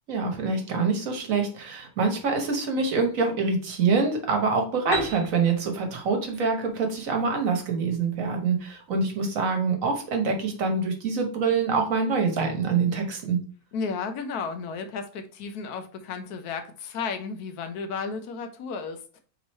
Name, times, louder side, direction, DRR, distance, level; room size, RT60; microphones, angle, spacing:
voice 1, 0.1-13.4, right 4 dB, 65° right, 3 dB, 1.3 m, -25 dB
Piano, 4.9-8.6, equal, 40° left, 1.4 m, -37 dB
voice 2, 13.7-19.2, left 5 dB, 80° left, 7 dB, 1.2 m, -33 dB
3.6 x 3.1 x 4.1 m, 0.40 s
omnidirectional pair, 1.6 m